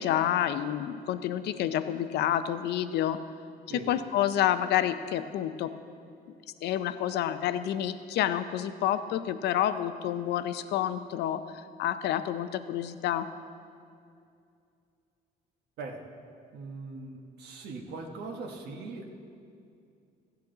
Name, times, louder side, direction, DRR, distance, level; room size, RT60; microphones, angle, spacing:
voice 1, 0.0-3.2 3.9-5.7 6.6-13.3, left 11 dB, 70° left, 11 dB, 0.5 m, -29 dB
voice 2, 16.5-19.1, right 3 dB, 65° right, 2 dB, 1.2 m, -40 dB
15.0 x 8.6 x 3.9 m, 2.4 s
cardioid pair, 150°, 18 cm